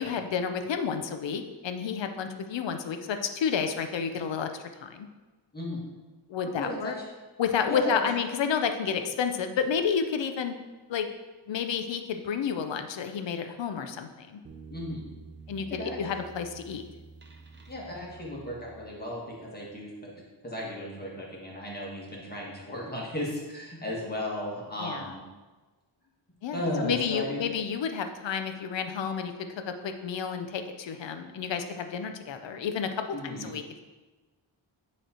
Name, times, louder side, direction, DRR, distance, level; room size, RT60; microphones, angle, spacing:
voice 1, 0.0-5.1 6.3-6.9 7.4-10.5 10.9-11.1 11.5-14.4 15.5-16.9 24.8-25.1 26.4-29.3 29.7-32.9 33.2-33.6, left 6 dB, 65° left, 7 dB, 0.6 m, -30 dB
voice 2, 6.6-7.0 7.7-8.0 14.7-15.0 15.7-16.0 17.7-20.1 20.4-25.2 26.5-27.4 33.1-33.5, left 1 dB, 20° left, -3 dB, 1.4 m, -35 dB
sound 1, 14.4-19.4, right 4 dB, 25° right, 0.5 m, -49 dB
9.2 x 3.2 x 4.3 m, 1.3 s
wide cardioid pair, 175°, 48 cm